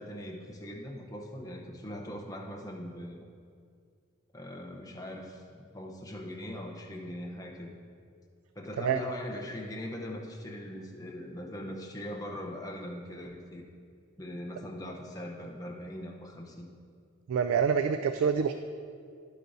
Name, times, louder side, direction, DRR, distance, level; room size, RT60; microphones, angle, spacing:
voice 1, 0.0-3.2 4.3-7.8 8.6-13.6 14.2-16.7, left 1 dB, 15° left, -1 dB, 0.8 m, -41 dB
voice 2, 17.3-18.5, right 6 dB, 80° right, 9 dB, 0.3 m, -26 dB
11.5 x 8.1 x 2.7 m, 2.3 s
head